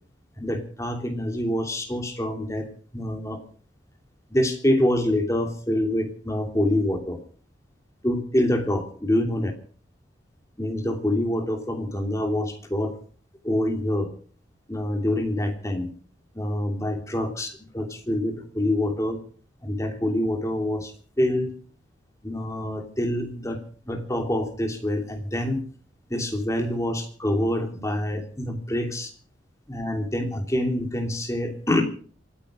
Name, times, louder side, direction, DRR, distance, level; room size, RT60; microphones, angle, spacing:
voice 1, 0.4-2.7 2.9-3.4 4.3-7.2 8.0-9.5 10.6-12.9 13.4-14.1 14.7-15.9 16.3-19.2 19.6-21.5 22.2-23.6 23.9-25.6 26.1-29.1 29.7-31.8, left 1 dB, 15° left, 4 dB, 3.0 m, -26 dB
27.0 x 9.9 x 5.0 m, 0.43 s
head